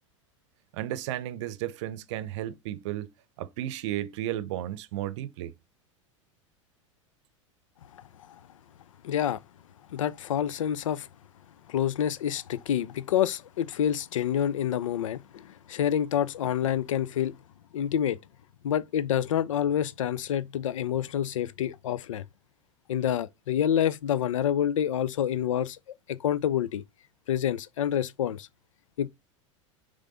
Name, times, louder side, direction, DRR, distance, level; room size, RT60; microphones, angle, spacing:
voice 1, 0.7-3.1 3.4-5.5, right 13 dB, 65° right, 0.7 m, -33 dB
voice 2, 9.0-9.4 9.9-11.1 11.7-17.3 17.7-18.2 18.6-22.2 22.9-25.8 26.1-26.8 27.3-28.5 29.0-29.1, left 10 dB, 75° left, 0.6 m, -27 dB
6.6 x 3.7 x 3.9 m
hypercardioid pair, 90°, 17 cm